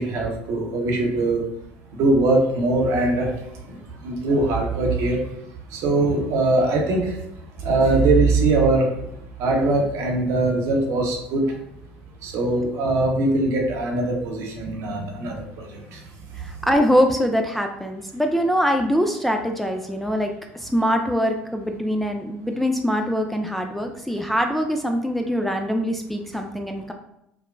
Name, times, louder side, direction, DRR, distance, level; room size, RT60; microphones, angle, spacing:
voice 1, 0.0-1.4 2.0-3.3 3.7-3.8 4.0-5.2 5.7-7.1 7.6-8.9 9.4-11.4 12.2-15.3, right 2 dB, 60° right, 1 dB, 0.8 m, -21 dB
voice 2, 16.4-26.9, equal, 5° left, 3 dB, 0.3 m, -23 dB
4.7 x 2.1 x 2.4 m, 0.82 s
hypercardioid pair, 65°, 6 cm